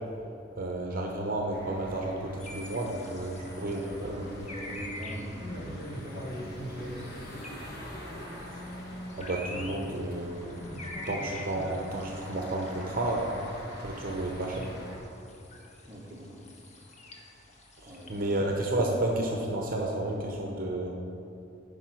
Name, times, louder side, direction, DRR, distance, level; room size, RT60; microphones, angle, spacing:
voice 1, 0.6-4.2 9.1-10.6 11.1-13.3 13.8-14.7 17.8-20.9, right 1 dB, 50° right, 0 dB, 0.8 m, -31 dB
sound 1, 1.5-15.0, equal, 55° left, 1.6 m, -43 dB
sound 2, 2.4-18.4, left 1 dB, 35° left, 1.2 m, -47 dB
voice 2, 3.6-7.4 15.8-16.5 17.9-18.3, equal, 15° right, -4 dB, 1.4 m, -42 dB
10.5 x 5.1 x 6.1 m, 2.8 s
head